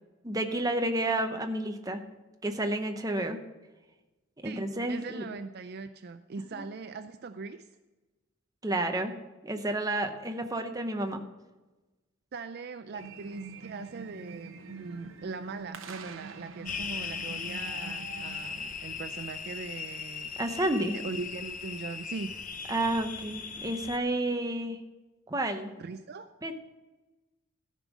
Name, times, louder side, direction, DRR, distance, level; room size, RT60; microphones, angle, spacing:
voice 1, 0.2-2.0 2.4-3.4 4.4-5.3 6.6-6.7 8.6-9.1 9.4-11.2 20.4-21.0 22.7-24.8 25.3-25.7 26.4-26.5, right 1 dB, 15° right, 5 dB, 0.8 m, -30 dB
voice 2, 4.4-7.7 12.3-20.3 20.9-22.3 25.8-26.3, right 4 dB, 50° right, 10 dB, 0.4 m, -40 dB
sound 1, 13.0-18.7, right 4 dB, 65° right, 0.8 m, -45 dB
sound 2, 16.6-24.0, left 6 dB, 35° left, 0.6 m, -38 dB
13.5 x 5.4 x 6.1 m, 1.1 s
head